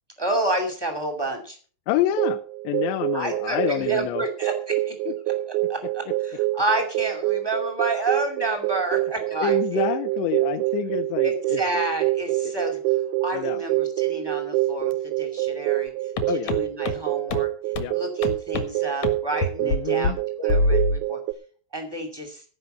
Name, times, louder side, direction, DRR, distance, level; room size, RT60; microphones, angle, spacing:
voice 1, 0.2-1.6 3.1-5.1 5.7-9.9 11.2-12.8 13.2-15.9 16.3-17.5 17.9-21.2 21.7-22.4, right 2 dB, 30° right, 4 dB, 0.4 m, -30 dB
voice 2, 1.9-2.4 2.6-4.2 5.1-5.2 9.4-11.6 12.5-12.6 13.3-13.6 16.3-16.5 17.8-17.9 19.6-20.2, left 14 dB, 80° left, 9 dB, 3.0 m, -27 dB
sound 1, 2.2-21.3, right 16 dB, 85° right, 2.3 m, -26 dB
sound 2, 16.2-16.3 16.5-16.6 16.8-16.9 17.3-17.4 17.7-17.8 18.2-18.6 19.0-19.1 19.4-19.8 20.0-20.1 20.5-21.0, left 2 dB, 60° left, 2.0 m, -22 dB
16.0 x 5.6 x 7.9 m, 0.42 s
omnidirectional pair, 5.3 m